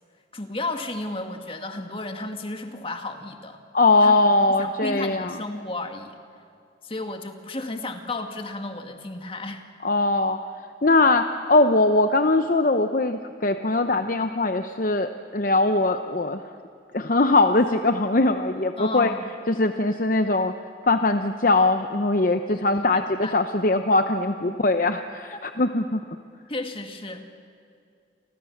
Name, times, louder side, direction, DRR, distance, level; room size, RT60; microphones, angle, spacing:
voice 1, 0.3-3.6 4.0-4.1 4.5-6.2 6.8-9.6 18.8-19.3 22.5-23.4 24.5-24.6 25.3-25.4 26.5-27.3, left 2 dB, 30° left, 5 dB, 1.9 m, -33 dB
voice 2, 3.7-5.4 9.8-10.4 10.8-16.4 16.9-19.1 19.5-20.5 20.9-26.0, left 2 dB, 50° left, 7 dB, 0.8 m, -21 dB
29.5 x 24.5 x 7.3 m, 2.4 s
head